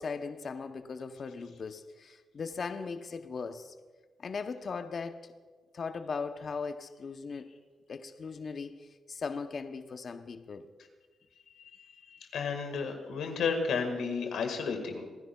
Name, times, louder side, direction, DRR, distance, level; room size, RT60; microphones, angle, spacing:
voice 1, 0.0-3.7 4.2-5.3 5.7-7.5 7.9-10.7, left 5 dB, 55° left, 0.6 m, -38 dB
voice 2, 12.3-15.1, left 5 dB, 80° left, 1.6 m, -32 dB
27.5 x 10.0 x 2.3 m
cardioid pair, 65°, 0 cm